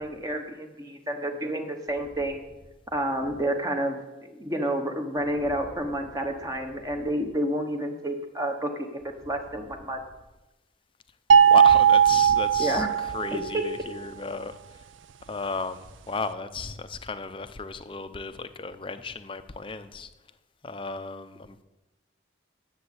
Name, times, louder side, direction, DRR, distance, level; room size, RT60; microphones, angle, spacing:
voice 1, 0.0-2.4 2.9-9.0 9.2-10.0 12.6-12.9 13.3-13.9, right 1 dB, 20° right, 4 dB, 1.0 m, -30 dB
sound 1, 11.3-13.5, right 8 dB, 85° right, 0.5 m, -18 dB
voice 2, 11.4-14.5 15.3-20.1 20.6-21.6, left 4 dB, 25° left, 11 dB, 0.6 m, -34 dB
10.5 x 7.3 x 8.2 m, 1.0 s
head